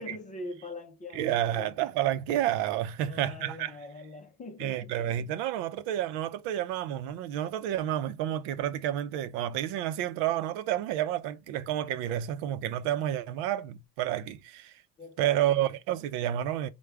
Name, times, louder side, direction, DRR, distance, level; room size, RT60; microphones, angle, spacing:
voice 1, 0.0-1.8 3.0-4.9 15.0-15.5, left 2 dB, 20° left, 0.5 m, -43 dB
voice 2, 1.1-3.7 4.6-14.8 15.2-16.7, right 12 dB, 80° right, 0.6 m, -30 dB
4.8 x 2.2 x 3.3 m
cardioid pair, 175°, 41 cm